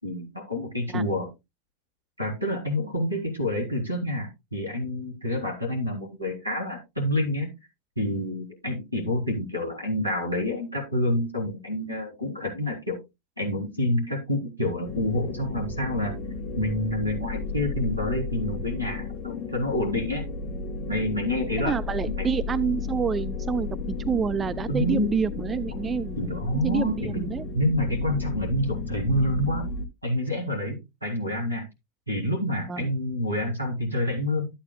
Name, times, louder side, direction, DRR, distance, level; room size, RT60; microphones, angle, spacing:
voice 1, 0.0-1.3 2.2-7.5 8.0-13.0 13.4-16.2 16.6-20.3 20.9-21.8 22.1-22.3 24.7-25.1 26.2-29.7 30.0-31.6 32.1-34.5, left 1 dB, 90° right, 3.6 m, -28 dB
sound 1, 14.8-29.9, left 4 dB, 30° left, 1.2 m, -33 dB
voice 2, 21.6-26.2 26.6-27.4 32.7-32.9, right 7 dB, 20° right, 0.4 m, -28 dB
12.0 x 9.0 x 2.2 m
figure-of-eight pair, 90°, 0 cm